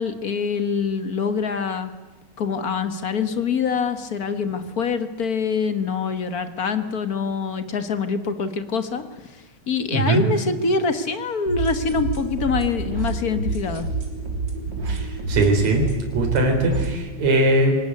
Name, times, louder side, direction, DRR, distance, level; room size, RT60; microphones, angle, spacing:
voice 1, 0.0-1.9 2.4-13.9, left 5 dB, 45° left, 9 dB, 1.2 m, -25 dB
voice 2, 9.9-10.2 14.9-15.8 16.1-17.7, right 2 dB, 65° right, 3 dB, 5.3 m, -20 dB
sound 1, 11.5-16.9, right 3 dB, 40° right, 4.1 m, -28 dB
25.0 x 19.5 x 9.6 m, 1.2 s
omnidirectional pair, 3.4 m